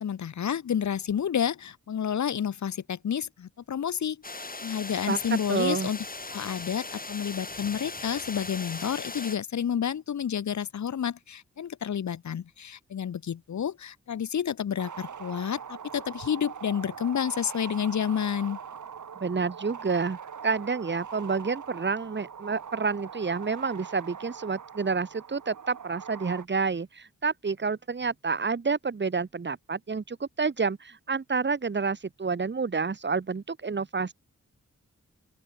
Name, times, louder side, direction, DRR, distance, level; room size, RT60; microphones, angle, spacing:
voice 1, 0.0-4.2 4.6-6.0 6.3-18.6, left 8 dB, 75° left, 0.9 m, -30 dB
sound 1, 4.2-9.4, left 3 dB, 30° left, 2.2 m, -39 dB
voice 2, 5.5-5.9 19.2-20.2 20.4-34.1, right 4 dB, 40° right, 1.1 m, -29 dB
sound 2, 14.8-26.5, right 7 dB, 90° right, 3.7 m, -42 dB
open air
cardioid pair, 55°, 29 cm